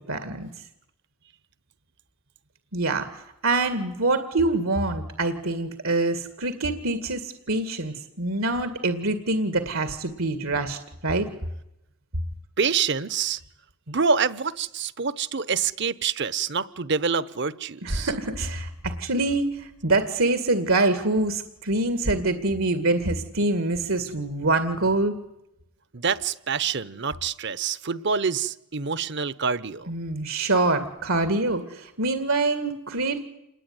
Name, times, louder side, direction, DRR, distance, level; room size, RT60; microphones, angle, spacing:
voice 1, 0.1-0.5 2.7-3.1 3.4-11.3 17.8-25.2 29.9-33.2, right 2 dB, 80° right, 10 dB, 2.2 m, -25 dB
voice 2, 12.6-13.4 13.9-18.1 25.9-29.9, right 5 dB, 55° right, 17 dB, 1.0 m, -26 dB
28.0 x 21.0 x 9.7 m, 0.87 s
head